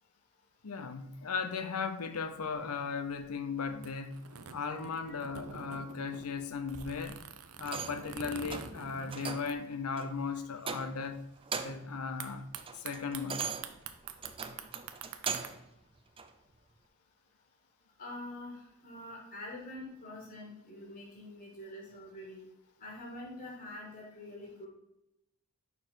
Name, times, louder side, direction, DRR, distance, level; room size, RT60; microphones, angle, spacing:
voice 1, 0.6-7.2 7.6-11.2 11.6-12.5 12.8-13.5, left 5 dB, 85° left, 0.7 m, -37 dB
sound 1, 2.1-10.2 10.5-10.6 10.7-11.2 12.2-15.5, right 6 dB, 90° right, 0.6 m, -47 dB
sound 2, 7.6-8.1 8.5-8.8 9.1-9.6 10.0-10.1 10.6-11.1 11.4-11.9 12.3-15.7 16.2-16.3, right 5 dB, 25° right, 0.4 m, -39 dB
voice 2, 18.0-22.4 22.8-24.7, left 1 dB, 45° left, 1.9 m, -45 dB
5.4 x 4.5 x 6.1 m
head